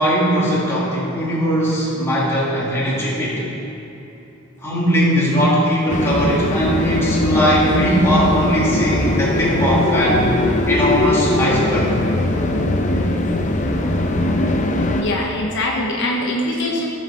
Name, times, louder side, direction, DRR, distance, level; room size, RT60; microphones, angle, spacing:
voice 1, 0.0-3.4 4.6-10.3 10.7-11.9, equal, 15° left, -7 dB, 2.6 m, -19 dB
sound 1, 5.9-15.0, left 1 dB, 40° left, 0.7 m, -20 dB
voice 2, 15.0-16.9, left 1 dB, 65° left, -2 dB, 1.1 m, -22 dB
15.0 x 7.3 x 4.4 m, 2.9 s
head